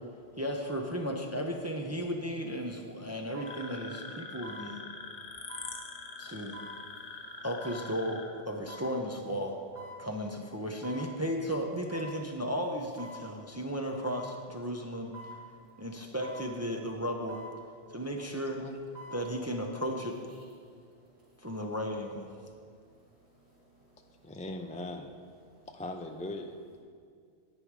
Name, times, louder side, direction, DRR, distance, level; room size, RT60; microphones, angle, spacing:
voice 1, 0.4-4.8 6.2-6.6 7.4-9.6 10.0-15.1 15.8-17.4 17.9-18.6 19.1-20.2 21.4-22.3, equal, 15° right, 1 dB, 0.7 m, -35 dB
sound 1, 2.2-2.3 3.3-3.6 4.4-4.7 5.5-5.7 6.5-6.8 7.6-7.8 8.7-8.9 9.8-10.0 10.8-11.1 11.9-12.2 13.0-13.2 14.1-14.3 15.1-15.4 16.2-16.5 17.3-17.5 18.7-19.2 19.6-19.7, equal, 45° right, 2.8 m, -45 dB
sound 2, 3.5-8.3, left 4 dB, 80° left, 1.3 m, -44 dB
voice 2, 5.2-6.2 6.5-6.6 6.8-7.4 10.0-10.1 19.0-19.1 20.6-21.2 23.3-23.9, right 2 dB, 60° right, -12 dB, 3.0 m, -64 dB
voice 3, 24.2-25.1 25.7-26.8, left 1 dB, 10° left, 4 dB, 0.3 m, -40 dB
10.5 x 9.2 x 4.8 m, 2.1 s
omnidirectional pair, 1.1 m